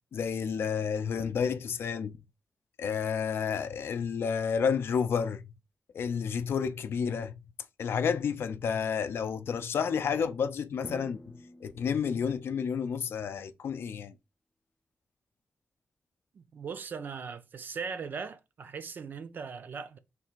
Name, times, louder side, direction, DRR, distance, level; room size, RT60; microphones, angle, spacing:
voice 1, 0.1-2.2 2.8-5.4 5.9-7.4 7.8-11.2 11.6-14.1, left 6 dB, 80° left, 0.4 m, -30 dB
Drum, 10.8-12.8, left 1 dB, 20° left, 0.5 m, -48 dB
voice 2, 16.3-20.0, right 5 dB, 55° right, 0.3 m, -39 dB
3.3 x 2.4 x 4.4 m
wide cardioid pair, 165°, 4 cm